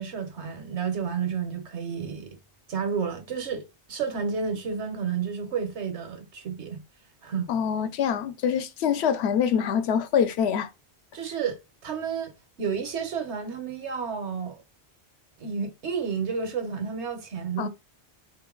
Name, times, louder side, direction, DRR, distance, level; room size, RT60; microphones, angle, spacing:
voice 1, 0.0-2.4 2.7-3.6 3.9-6.8 7.2-7.5 11.1-11.6 11.8-12.3 12.6-14.6 15.4-17.7, right 6 dB, 90° right, 1.3 m, -31 dB
voice 2, 7.5-10.7 17.6-17.7, left 8 dB, 75° left, 0.9 m, -25 dB
3.8 x 2.8 x 3.7 m
omnidirectional pair, 1.1 m